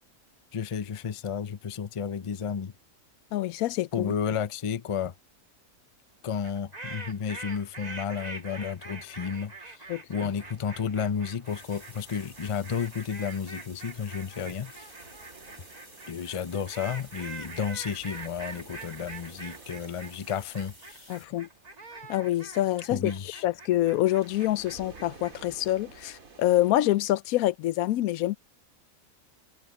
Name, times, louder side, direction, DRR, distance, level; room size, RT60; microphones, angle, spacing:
voice 1, 0.5-2.7 3.9-5.1 6.2-9.5 10.1-14.9 16.1-21.1 22.9-23.4, left 7 dB, 35° left, 0.5 m, -32 dB
voice 2, 3.3-4.1 9.9-10.3 21.1-21.5 22.1-23.1 23.4-28.4, left 14 dB, 85° left, 1.0 m, -26 dB
sound 1, 6.4-25.5, right 3 dB, 30° right, 1.5 m, -44 dB
sound 2, 10.2-26.7, right 4 dB, 75° right, 3.1 m, -54 dB
sound 3, 11.4-21.3, right 1 dB, 55° right, 5.9 m, -53 dB
omnidirectional pair, 1.5 m